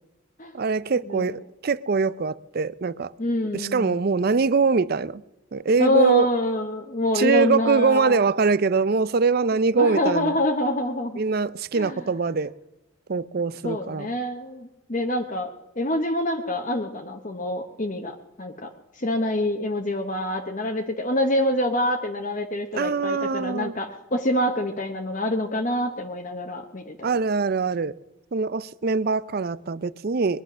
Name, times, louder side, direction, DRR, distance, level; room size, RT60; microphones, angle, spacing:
voice 1, 0.5-3.1 3.5-5.2 5.5-6.3 7.1-10.3 11.2-12.5 13.1-14.1 22.7-23.7 27.0-27.9 28.3-30.4, right 4 dB, 45° right, 0.5 m, -23 dB
voice 2, 3.2-4.0 5.8-8.2 9.8-11.2 11.7-12.0 13.6-15.5 15.8-18.7 19.0-27.1, left 1 dB, 40° left, 1.1 m, -26 dB
21.5 x 11.0 x 6.1 m
head